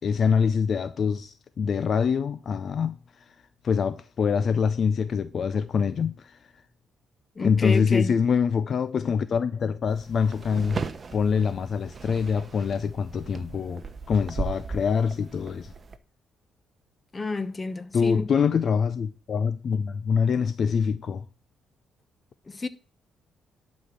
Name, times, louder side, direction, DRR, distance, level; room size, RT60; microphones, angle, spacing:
voice 1, 0.0-3.2 3.6-6.4 7.4-10.8 11.1-15.7 17.9-21.2, left 6 dB, 55° left, 0.6 m, -25 dB
voice 2, 7.3-8.2 17.1-18.3 22.5-22.7, left 3 dB, 25° left, 1.0 m, -30 dB
sound 1, 9.9-16.0, right 4 dB, 35° right, 0.9 m, -37 dB
11.5 x 4.4 x 7.5 m
cardioid pair, 90°, 0 cm